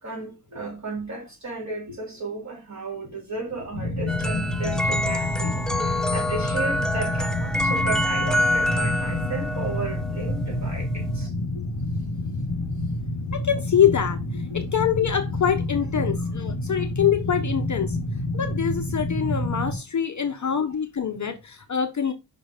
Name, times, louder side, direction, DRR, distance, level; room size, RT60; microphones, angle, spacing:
voice 1, 0.0-11.6 13.3-13.4 14.5-14.6 15.9-16.0, right 3 dB, 35° right, 3.4 m, -34 dB
sound 1, 3.7-19.8, left 2 dB, 55° left, 2.0 m, -28 dB
sound 2, 4.1-11.3, left 1 dB, ahead, 0.3 m, -27 dB
voice 2, 13.3-18.0 18.3-22.1, left 8 dB, 40° left, 0.7 m, -24 dB
5.5 x 3.7 x 5.0 m
wide cardioid pair, 125°, 47 cm